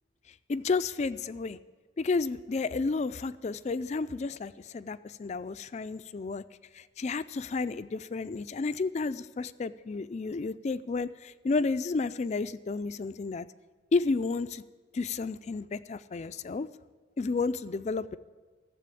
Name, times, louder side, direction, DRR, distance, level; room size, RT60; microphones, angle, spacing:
voice 1, 0.5-1.6 2.0-6.4 6.7-13.5 13.9-14.6 14.9-16.7 17.2-18.2, left 4 dB, 35° left, 15 dB, 0.3 m, -31 dB
13.5 x 7.6 x 8.4 m, 1.4 s
head